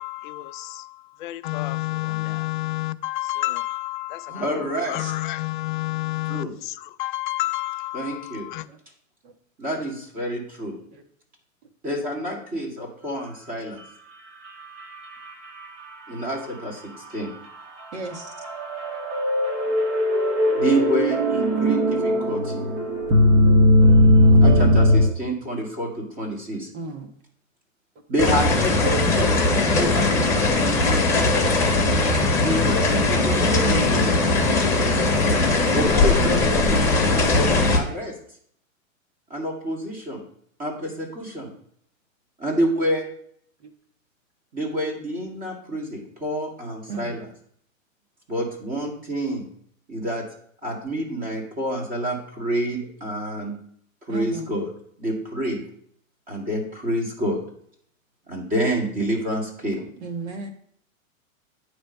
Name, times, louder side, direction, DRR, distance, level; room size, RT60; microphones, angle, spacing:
voice 1, 0.0-8.6, left 17 dB, 40° left, 12 dB, 0.4 m, -30 dB
voice 2, 4.3-5.0 6.3-6.5 7.9-8.5 9.6-10.8 11.8-13.8 16.1-17.3 20.6-22.6 24.4-26.7 28.1-31.7 32.4-34.2 35.7-38.2 39.3-40.2 40.6-41.5 42.4-43.1 44.5-47.3 48.3-49.5 49.9-50.2 50.6-53.5 54.0-54.7 55.0-55.6 56.3-57.4 58.3-59.8, equal, 20° right, 0 dB, 2.4 m, -28 dB
sound 1, 14.5-15.9 16.3-16.4 17.6-25.1, left 1 dB, 35° right, 1.7 m, -18 dB
voice 3, 17.9-18.3 24.2-24.4 26.7-27.1 46.9-47.1 54.1-54.4 60.0-60.5, right 3 dB, 55° right, 4 dB, 1.5 m, -33 dB
sound 2, 28.2-37.8, left 2 dB, 5° left, 1.6 m, -20 dB
9.2 x 3.3 x 5.4 m, 0.64 s
hypercardioid pair, 140°, 40 cm